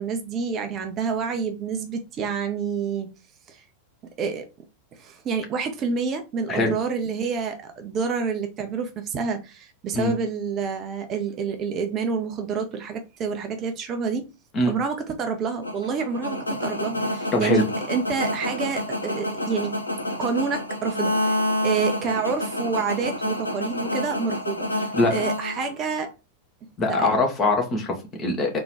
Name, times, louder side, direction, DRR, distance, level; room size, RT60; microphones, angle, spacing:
voice 1, 0.0-3.1 3.5-3.6 4.2-4.5 4.9-14.3 14.7-19.8 20.2-26.1 26.9-27.1, right 5 dB, 30° right, 6 dB, 0.7 m, -28 dB
sound 1, 15.6-26.1, left 1 dB, 80° left, 0.6 m, -28 dB
voice 2, 17.3-17.6 24.9-25.1 26.8-28.6, left 2 dB, 30° left, 1 dB, 1.4 m, -22 dB
3.6 x 3.0 x 4.7 m, 0.28 s
figure-of-eight pair, 90°, 0 cm